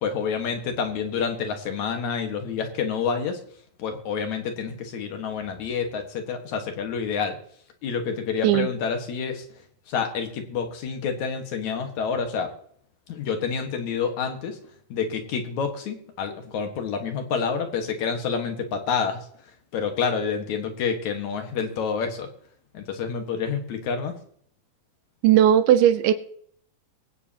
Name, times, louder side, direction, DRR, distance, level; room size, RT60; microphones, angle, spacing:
voice 1, 0.0-3.4 3.8-7.4 7.8-9.4 9.9-12.5 13.1-14.6 14.9-19.2 19.7-22.3 22.7-24.1, left 6 dB, 60° left, 5 dB, 2.7 m, -28 dB
voice 2, 25.2-26.1, right 11 dB, 80° right, 10 dB, 2.5 m, -17 dB
22.5 x 9.2 x 2.9 m, 0.62 s
omnidirectional pair, 3.9 m